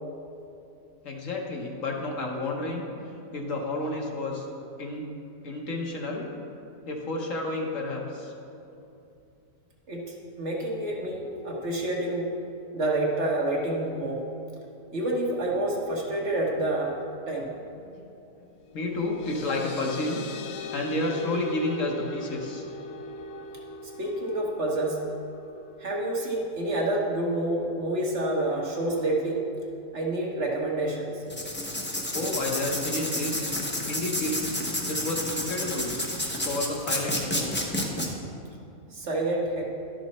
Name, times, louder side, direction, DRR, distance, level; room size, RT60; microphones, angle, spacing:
voice 1, 1.0-2.9 3.3-4.5 4.8-5.1 5.4-6.3 6.9-8.3 17.8-18.0 18.7-20.2 20.7-22.7 32.1-33.5 33.9-34.5 34.8-35.9 36.2-37.6, left 2 dB, 60° left, 0 dB, 1.3 m, -31 dB
voice 2, 10.4-12.3 12.7-14.2 14.9-16.9 17.3-17.5 24.0-25.0 25.8-29.4 29.9-31.1 38.9-39.7, right 1 dB, 50° right, -2 dB, 1.3 m, -28 dB
sound 1, 18.7-25.8, left 1 dB, 85° left, 1.2 m, -40 dB
Writing, 31.3-38.1, left 1 dB, 10° left, 0.5 m, -30 dB
11.5 x 6.1 x 4.2 m, 2.7 s
omnidirectional pair, 1.6 m